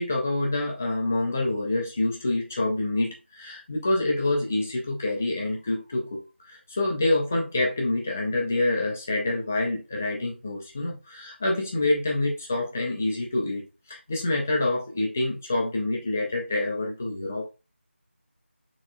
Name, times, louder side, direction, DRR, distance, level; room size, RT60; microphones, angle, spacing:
voice 1, 0.0-13.6 13.9-17.5, left 2 dB, 10° left, -1 dB, 0.4 m, -27 dB
6.4 x 3.0 x 2.3 m, 0.29 s
figure-of-eight pair, 170°, 7 cm